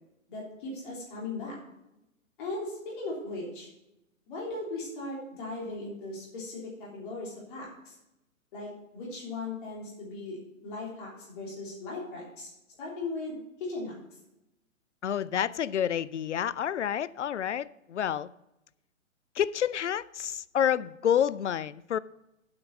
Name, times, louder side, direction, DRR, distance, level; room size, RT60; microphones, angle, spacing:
voice 1, 0.3-1.6 2.4-3.7 4.3-8.0 8.5-12.5 12.8-14.0, left 2 dB, 40° left, 3.5 m, -38 dB
voice 2, 15.0-18.3 19.4-22.0, left 9 dB, 60° left, 0.5 m, -29 dB
8.7 x 7.8 x 5.4 m
figure-of-eight pair, 125°, 40 cm